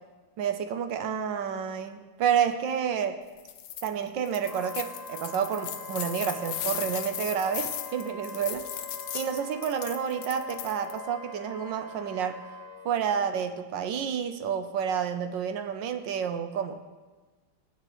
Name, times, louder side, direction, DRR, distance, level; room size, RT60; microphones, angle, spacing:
voice 1, 0.4-3.2 3.8-8.7 9.1-12.4 12.8-16.8, right 8 dB, 70° right, 8 dB, 1.3 m, -29 dB
sound 1, 3.4-3.9 4.3-11.0, left 10 dB, 80° left, 1.5 m, -37 dB
Wind instrument woodwind instrument, 4.4-12.9, left 3 dB, 40° left, 1.9 m, -43 dB
18.0 x 9.7 x 3.1 m, 1.3 s
omnidirectional pair, 2.3 m